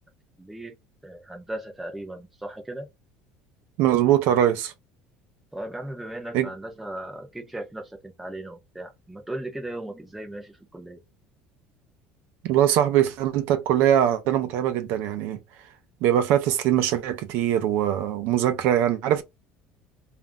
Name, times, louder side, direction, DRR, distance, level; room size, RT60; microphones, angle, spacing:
voice 1, 0.4-0.8 1.0-2.9 5.5-11.0, right 1 dB, 5° right, 0.7 m, -37 dB
voice 2, 3.8-4.7 6.3-6.5 12.4-15.4 16.0-19.2, right 11 dB, 65° right, 0.5 m, -22 dB
2.5 x 2.1 x 3.5 m
cardioid pair, 145°, 4 cm